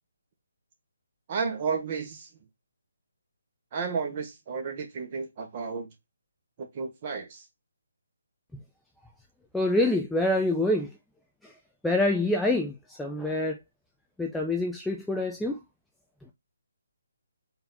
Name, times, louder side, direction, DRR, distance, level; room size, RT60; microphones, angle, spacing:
voice 1, 1.3-2.3 3.7-5.9 6.6-7.4, right 5 dB, 30° right, 1.2 m, -32 dB
voice 2, 9.5-10.9 11.4-11.5 11.8-13.6 14.2-15.6, left 1 dB, 5° left, 0.4 m, -26 dB
4.3 x 2.7 x 3.9 m
hypercardioid pair, 165°, 0 cm